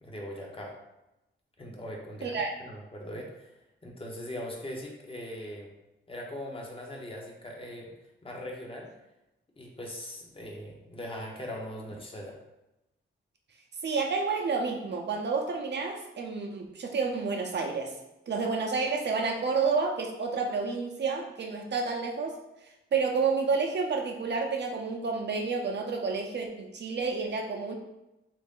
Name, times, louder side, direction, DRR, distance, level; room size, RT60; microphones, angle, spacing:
voice 1, 0.0-0.8 1.6-3.5 3.8-5.7 6.1-7.9 8.2-8.9 9.6-12.4, equal, 25° left, -1 dB, 0.7 m, -40 dB
voice 2, 2.2-2.5 13.8-17.9 18.3-22.4 22.9-27.7, right 4 dB, 55° right, 2 dB, 0.5 m, -30 dB
3.1 x 2.5 x 3.6 m, 0.93 s
wide cardioid pair, 130°, 21 cm